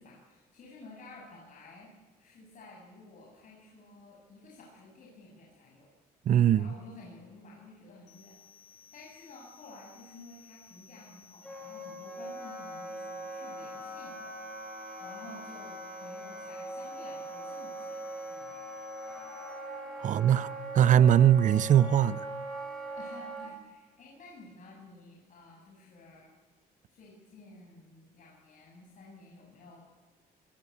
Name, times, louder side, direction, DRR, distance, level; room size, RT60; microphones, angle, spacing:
voice 1, 0.0-1.9 2.2-5.9 6.6-8.4 8.9-14.4 15.0-18.6 19.0-19.2 20.0-20.3 23.0-26.3 26.9-29.8, left 2 dB, 50° left, 7.5 m, -52 dB
voice 2, 6.3-6.7 20.0-20.5 20.7-22.3, right 10 dB, 50° right, 0.7 m, -21 dB
sound 1, 8.1-19.5, left 3 dB, 70° left, 6.1 m, -58 dB
Wind instrument woodwind instrument, 11.4-23.5, right 1 dB, 5° left, 7.9 m, -41 dB
23.5 x 20.5 x 8.7 m
cardioid pair, 110°, 17 cm